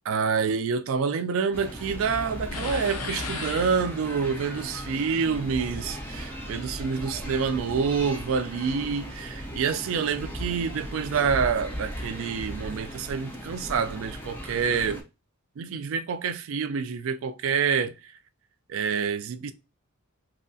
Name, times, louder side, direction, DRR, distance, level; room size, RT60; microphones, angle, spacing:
voice 1, 0.1-15.0 15.6-18.1 18.7-19.5, right 6 dB, 60° right, 0.3 m, -27 dB
sound 1, 1.5-15.0, equal, 10° left, 0.4 m, -37 dB
sound 2, 2.5-4.3, left 4 dB, 75° left, 0.5 m, -35 dB
2.8 x 2.2 x 2.6 m
head